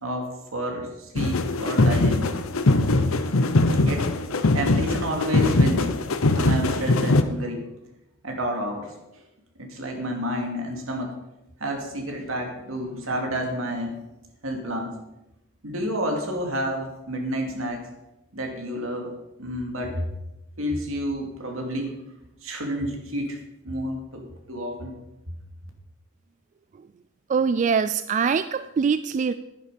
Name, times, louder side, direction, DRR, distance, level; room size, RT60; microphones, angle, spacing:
voice 1, 0.0-2.3 3.8-4.1 4.5-5.9 6.3-7.6 8.2-8.9 9.6-11.1 11.6-13.9 14.4-14.9 15.6-17.8 18.3-19.1 19.4-20.1 20.6-22.1 22.4-23.4 23.6-24.9, equal, 75° right, 2 dB, 2.5 m, -30 dB
sound 1, 1.2-7.2, left 2 dB, 85° left, 0.9 m, -21 dB
voice 2, 27.3-29.3, right 6 dB, 35° right, 12 dB, 0.3 m, -23 dB
11.0 x 10.0 x 5.1 m, 0.94 s
head